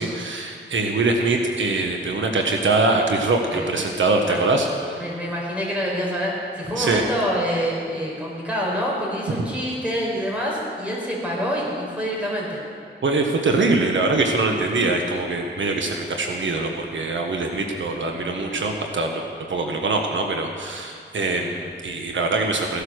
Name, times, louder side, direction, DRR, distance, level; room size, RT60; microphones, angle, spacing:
voice 1, 0.0-5.1 6.8-7.0 9.3-9.4 13.0-19.2 19.5-22.8, right 3 dB, 80° right, 2 dB, 1.3 m, -23 dB
voice 2, 5.0-12.6 14.9-15.0 18.1-18.2, equal, 5° right, -4 dB, 4.8 m, -26 dB
15.5 x 11.5 x 6.4 m, 2.4 s
wide cardioid pair, 115°, 20 cm